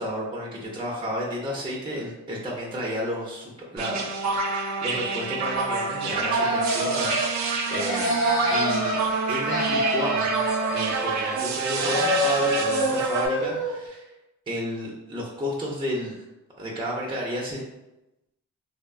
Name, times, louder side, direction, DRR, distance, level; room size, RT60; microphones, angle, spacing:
voice 1, 0.0-4.1 4.4-8.2 8.5-9.0 9.3-14.1 14.5-16.2 16.6-17.6, equal, 15° right, -3 dB, 0.6 m, -32 dB
sound 1, 3.8-13.3, right 5 dB, 60° right, 0.4 m, -27 dB
sound 2, 6.1-7.3 7.7-9.0 9.3-11.5 11.7-13.7, left 1 dB, 35° left, 1.1 m, -27 dB
2.8 x 2.0 x 2.5 m, 0.96 s
cardioid pair, 60°, 32 cm